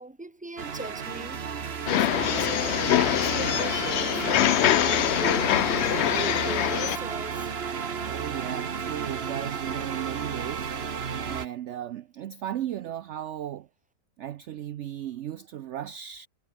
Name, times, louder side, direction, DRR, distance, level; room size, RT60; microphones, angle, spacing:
voice 1, 0.0-1.4 1.9-4.5 4.8-7.5, right 2 dB, 5° right, 1.3 m, -39 dB
sound 1, 0.6-11.5, right 6 dB, 45° right, 1.4 m, -32 dB
sound 2, 1.9-7.0, left 13 dB, 65° left, 0.7 m, -24 dB
voice 2, 8.0-10.7 10.9-13.7 14.2-16.3, right 11 dB, 65° right, 0.8 m, -36 dB
omnidirectional pair, 1.5 m